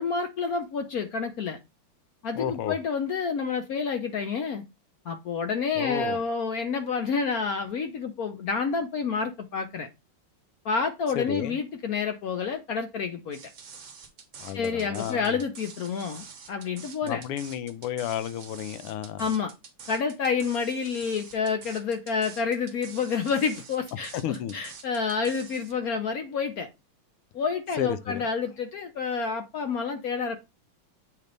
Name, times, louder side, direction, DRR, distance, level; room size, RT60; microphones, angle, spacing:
voice 1, 0.0-1.6 2.2-4.6 5.1-9.9 10.6-13.5 14.5-17.2 19.2-19.5 19.9-26.7 27.3-30.4, left 5 dB, 75° left, 0.8 m, -29 dB
voice 2, 2.4-2.8 5.8-6.2 11.1-11.6 14.4-15.4 17.0-19.2 24.1-24.5 27.8-28.2, left 10 dB, 90° left, 1.6 m, -32 dB
sound 1, 13.3-25.7, right 5 dB, 45° right, 1.1 m, -46 dB
8.4 x 3.4 x 3.9 m
omnidirectional pair, 2.4 m